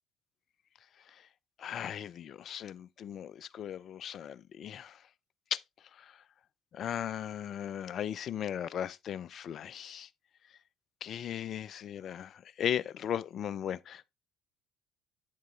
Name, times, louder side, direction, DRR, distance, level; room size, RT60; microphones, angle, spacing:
voice 1, 1.6-5.0 5.5-5.6 6.0-6.2 6.7-10.1 11.0-14.1, left 9 dB, 50° left, 0.4 m, -37 dB
9.3 x 7.4 x 2.3 m
figure-of-eight pair, 55°, 0 cm